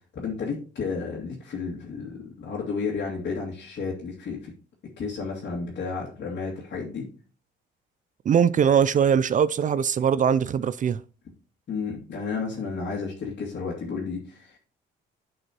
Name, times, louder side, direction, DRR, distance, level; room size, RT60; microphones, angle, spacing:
voice 1, 0.1-4.5 5.0-7.1 11.7-14.6, left 4 dB, 60° left, 2.3 m, -32 dB
voice 2, 8.3-11.0, right 7 dB, 40° right, 0.4 m, -21 dB
10.5 x 5.4 x 2.9 m
cardioid pair, 90°, 20 cm